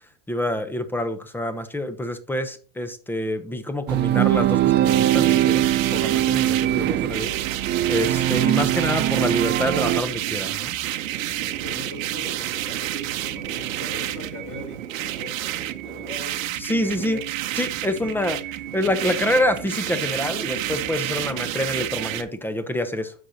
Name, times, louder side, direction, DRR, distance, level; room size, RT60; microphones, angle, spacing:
voice 1, 0.3-7.3 7.9-10.8 16.6-17.2 17.6-18.4 18.7-23.1, left 1 dB, 5° left, 0.8 m, -27 dB
sound 1, 3.9-10.0, right 13 dB, 30° right, 0.4 m, -21 dB
sound 2, 4.8-22.2, right 13 dB, 80° right, 0.9 m, -29 dB
voice 2, 11.6-17.2 18.0-18.1, left 4 dB, 40° left, 3.8 m, -41 dB
9.9 x 6.4 x 2.8 m
hypercardioid pair, 115°, 40 cm